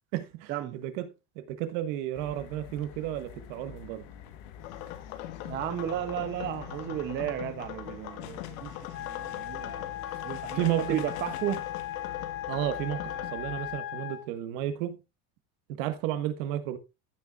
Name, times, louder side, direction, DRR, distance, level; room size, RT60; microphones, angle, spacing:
voice 1, 0.1-1.1 1.3-4.0 10.1-10.2 10.5-11.0 12.5-15.0 15.7-16.8, right 12 dB, 65° right, 1.6 m, -32 dB
sound 1, 2.1-13.8, left 9 dB, 70° left, 1.4 m, -47 dB
sound 2, 4.6-13.3, left 13 dB, 85° left, 1.4 m, -41 dB
voice 2, 5.4-9.9 10.2-11.6, right 11 dB, 25° right, 0.7 m, -34 dB
Wind instrument woodwind instrument, 8.9-14.3, left 11 dB, 30° left, 0.7 m, -38 dB
15.0 x 6.9 x 2.4 m
cardioid pair, 170°, 40 cm